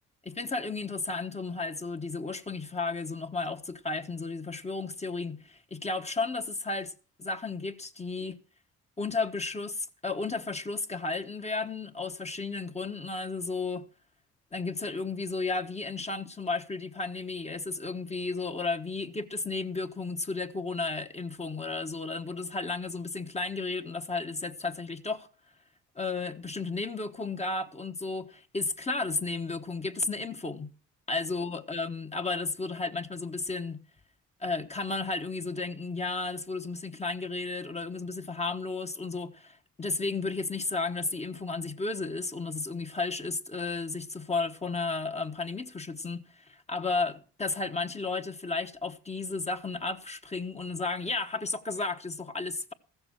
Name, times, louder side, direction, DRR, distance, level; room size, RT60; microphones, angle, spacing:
voice 1, 0.2-6.9 7.2-8.4 9.0-13.9 14.5-25.3 25.9-30.7 31.1-33.8 34.4-52.7, left 3 dB, 20° left, 1.2 m, -33 dB
15.0 x 7.1 x 7.3 m
cardioid pair, 90°, 31 cm